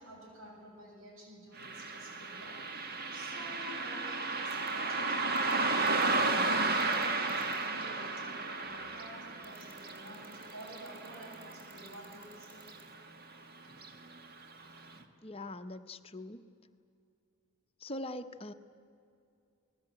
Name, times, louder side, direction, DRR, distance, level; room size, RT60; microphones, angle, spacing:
voice 1, 0.0-2.9 3.1-12.6, equal, 65° right, 0 dB, 7.2 m, -51 dB
Car passing by, 1.6-12.4 12.7-12.8 13.7-13.9 14.4-14.5 15.0-15.1, right 3 dB, 45° right, 1.5 m, -33 dB
sound 1, 4.5-4.7 5.4-5.5 5.9-6.0 6.8-7.6 9.4-12.8, right 3 dB, 25° right, 7.9 m, -57 dB
voice 2, 15.2-16.4 17.8-18.5, left 1 dB, 25° left, 9 dB, 0.8 m, -42 dB
29.0 x 20.0 x 9.0 m, 2.6 s
head